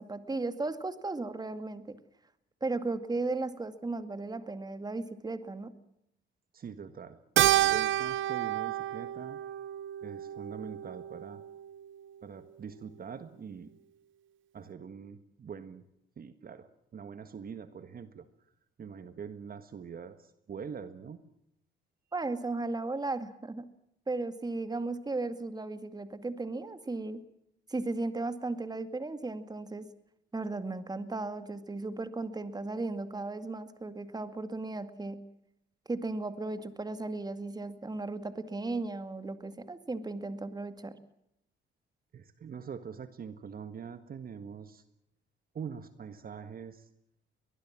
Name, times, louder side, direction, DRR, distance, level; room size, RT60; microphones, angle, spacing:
voice 1, 0.0-2.0 2.6-5.7 22.1-23.7 24.1-27.2 27.7-29.9 30.3-35.2 35.9-41.0, right 3 dB, 20° right, 11 dB, 2.2 m, -35 dB
voice 2, 6.5-7.2 7.5-9.4 10.0-11.4 12.2-13.7 14.5-15.8 16.2-18.2 18.8-21.2 42.1-44.8 45.5-46.9, right 6 dB, 45° right, 11 dB, 1.6 m, -43 dB
Keyboard (musical), 7.4-12.0, right 13 dB, 75° right, 0.8 m, -30 dB
23.0 x 20.0 x 7.5 m, 0.80 s
cardioid pair, 90°, 20 cm